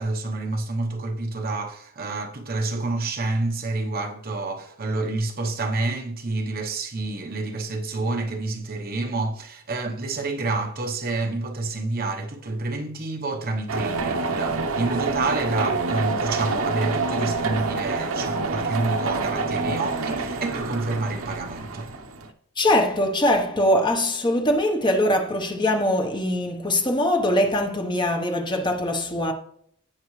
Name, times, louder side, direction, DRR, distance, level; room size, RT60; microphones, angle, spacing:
voice 1, 0.0-21.9, right 2 dB, 45° right, 1.1 m, -28 dB
sound 1, 13.7-22.3, right 3 dB, 70° right, 0.9 m, -27 dB
voice 2, 22.6-29.3, left 1 dB, 20° left, 1.1 m, -22 dB
16.5 x 5.6 x 3.2 m
head